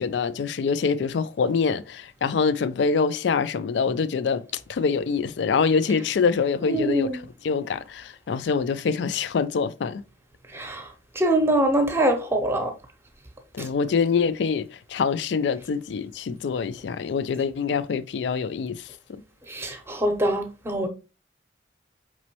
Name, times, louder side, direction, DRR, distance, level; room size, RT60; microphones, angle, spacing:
voice 1, 0.0-7.1 7.4-10.0 13.5-19.2, left 5 dB, 70° left, 0.3 m, -25 dB
voice 2, 6.6-7.1 10.5-10.9 11.2-12.7 13.6-13.7 19.5-20.9, right 1 dB, 15° right, 0.7 m, -24 dB
5.2 x 3.1 x 2.9 m
head